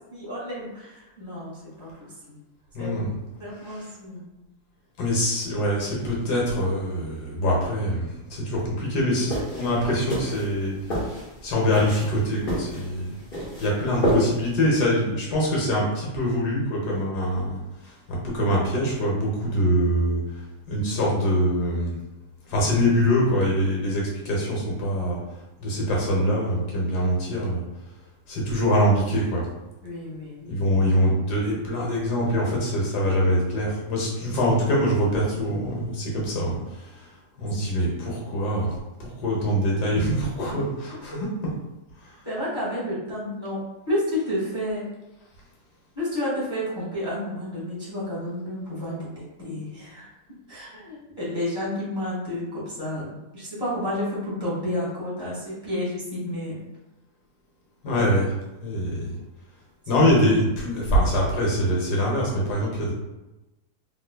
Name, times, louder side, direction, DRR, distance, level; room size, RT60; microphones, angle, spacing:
voice 1, 0.1-2.4 2.8-2.9 3.4-4.3 29.8-30.7 42.2-43.6 43.9-44.9 45.9-50.1 50.5-56.6 57.8-58.1 59.9-60.0, left 1 dB, 15° left, -8 dB, 1.1 m, -31 dB
voice 2, 2.7-3.1 3.6-3.9 5.0-13.1 13.6-17.6 18.1-20.2 20.7-22.0 22.5-25.2 25.6-27.6 28.3-29.4 30.5-37.1 37.4-38.7 39.0-41.2 57.8-58.3 58.6-59.1 59.9-62.9, equal, 80° left, -3 dB, 1.6 m, -24 dB
sound 1, 9.2-14.6, equal, 40° left, 1.1 m, -30 dB
3.6 x 3.1 x 2.2 m, 1.0 s
omnidirectional pair, 1.7 m